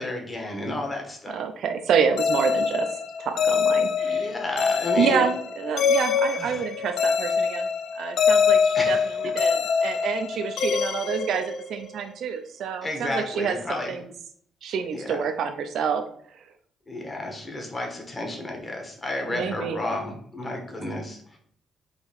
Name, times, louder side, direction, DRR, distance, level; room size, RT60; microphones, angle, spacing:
voice 1, 0.0-1.4 4.0-5.3 6.4-6.6 8.7-9.1 12.8-13.9 14.9-15.3 16.9-21.4, left 1 dB, 25° left, 1 dB, 1.4 m, -32 dB
voice 2, 1.3-2.9 3.2-4.3 5.0-7.7 7.9-13.6 13.9-14.1 14.6-16.0 19.3-19.8, right 6 dB, 70° right, 6 dB, 0.4 m, -28 dB
sound 1, 2.2-12.0, left 5 dB, 75° left, 0.4 m, -24 dB
4.1 x 2.9 x 4.2 m, 0.62 s
cardioid pair, 90°, 0 cm